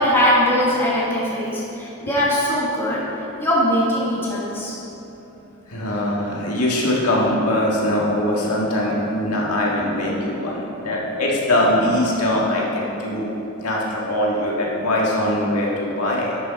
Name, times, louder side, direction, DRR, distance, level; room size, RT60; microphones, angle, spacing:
voice 1, 0.0-3.0 3.4-4.8, equal, 10° left, -7 dB, 1.6 m, -20 dB
voice 2, 5.7-16.4, left 1 dB, 90° left, -3 dB, 1.7 m, -22 dB
11.0 x 6.5 x 4.1 m, 2.9 s
head